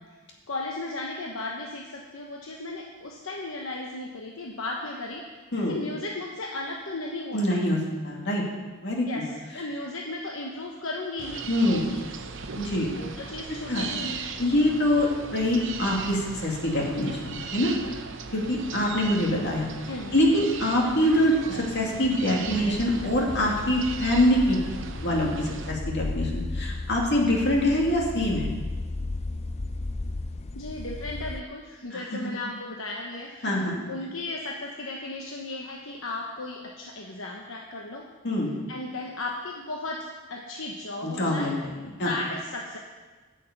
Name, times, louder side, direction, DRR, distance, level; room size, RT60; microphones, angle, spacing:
voice 1, 0.5-7.6 9.1-12.0 13.0-14.2 15.0-15.1 19.9-20.2 30.5-38.1 38.7-41.5 41.8-42.8, left 2 dB, 75° left, 0 dB, 1.1 m, -35 dB
voice 2, 7.3-7.8 8.0-8.4 8.8-9.1 11.5-11.9 12.6-12.9 13.7-13.9 14.4-17.7 18.3-19.7 20.1-24.6 25.0-28.5 31.9-32.2 33.4-33.8 38.2-38.5 41.0-41.6 42.0-42.1, left 1 dB, 60° left, -2 dB, 2.4 m, -24 dB
sound 1, 11.2-25.7, right 5 dB, 65° right, 0.8 m, -38 dB
sound 2, 22.5-31.4, left 2 dB, 30° left, 0.5 m, -34 dB
11.0 x 6.6 x 8.1 m, 1.3 s
head